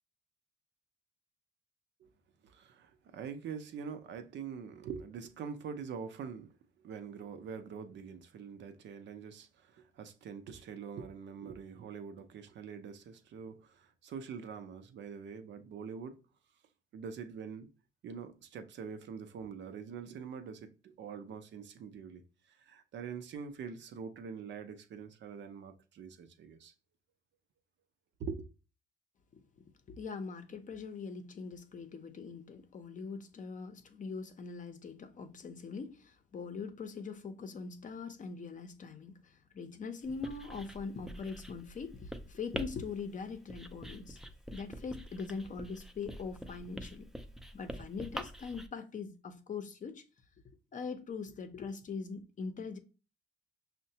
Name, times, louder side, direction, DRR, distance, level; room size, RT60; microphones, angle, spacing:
voice 1, 2.4-16.2 16.9-17.7 18.0-22.2 22.5-26.7 28.2-28.5, right 6 dB, 65° right, 0.6 m, -44 dB
voice 2, 29.9-44.2 44.5-47.1 47.5-50.0 50.7-52.8, left 5 dB, 40° left, 0.6 m, -42 dB
Writing, 40.0-48.7, equal, ahead, 0.4 m, -46 dB
5.5 x 2.1 x 2.7 m
cardioid pair, 90°, 20 cm